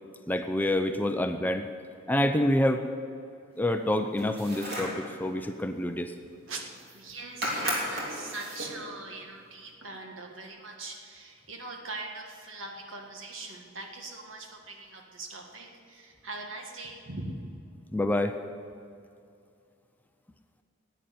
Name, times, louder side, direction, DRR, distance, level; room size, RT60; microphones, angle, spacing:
voice 1, 0.3-1.7 2.1-2.8 3.6-6.1 17.9-18.4, left 1 dB, 10° left, 7 dB, 0.5 m, -27 dB
sound 1, 4.2-5.0 6.5-6.6 6.8-7.1 7.4-8.8, equal, 50° right, 3.3 m, -33 dB
voice 2, 6.9-17.4, right 3 dB, 70° right, 2 dB, 1.8 m, -41 dB
11.0 x 9.1 x 9.3 m, 2.4 s
head